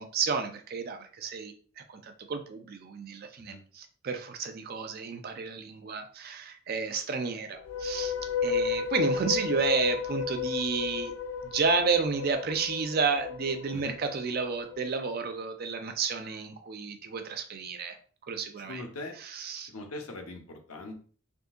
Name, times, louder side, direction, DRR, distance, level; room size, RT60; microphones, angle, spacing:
voice 1, 0.0-1.5 1.9-8.1 8.4-11.1 11.4-18.0 18.3-18.8 19.4-19.7, right 5 dB, 45° right, 6 dB, 0.4 m, -31 dB
sound 1, 7.5-14.8, left 6 dB, 60° left, 0.3 m, -33 dB
voice 2, 18.6-19.1 19.6-20.9, left 2 dB, 75° left, 3 dB, 0.8 m, -41 dB
3.6 x 2.7 x 2.4 m, 0.43 s
head